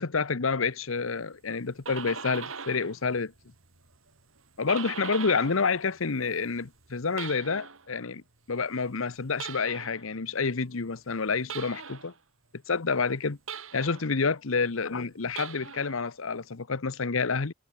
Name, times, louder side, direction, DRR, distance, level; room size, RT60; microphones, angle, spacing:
voice 1, 0.0-3.3 4.6-8.2 8.5-12.1 12.7-13.4 13.7-17.5, left 4 dB, 80° left, 0.9 m, -28 dB
sound 1, 1.5-3.0 3.3-5.7 6.0-7.9 9.3-10.1 11.5-12.1 13.5-14.2 15.2-16.0, right 6 dB, 80° right, 3.6 m, -41 dB
head